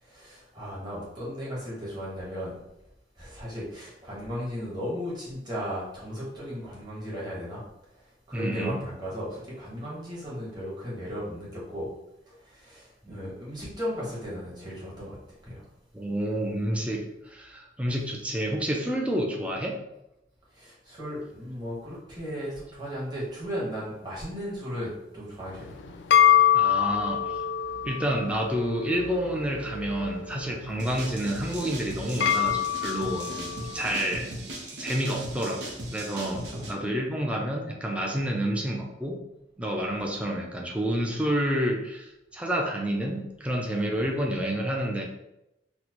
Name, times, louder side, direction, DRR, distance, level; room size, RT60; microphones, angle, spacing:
voice 1, 0.0-2.6 3.2-7.6 7.9-11.9 12.3-15.6 20.5-25.8 33.2-33.5 36.3-36.6, equal, 25° right, -7 dB, 1.2 m, -36 dB
voice 2, 8.3-8.8 13.1-13.2 15.9-19.8 26.5-27.4 27.8-33.3 33.7-34.5 34.7-39.2 39.6-45.0, equal, 5° right, 1 dB, 0.4 m, -29 dB
sound 1, 25.5-34.0, left 10 dB, 85° left, 0.3 m, -26 dB
sound 2, 30.8-36.7, right 1 dB, 85° right, 0.6 m, -38 dB
4.1 x 2.1 x 2.9 m, 0.88 s
head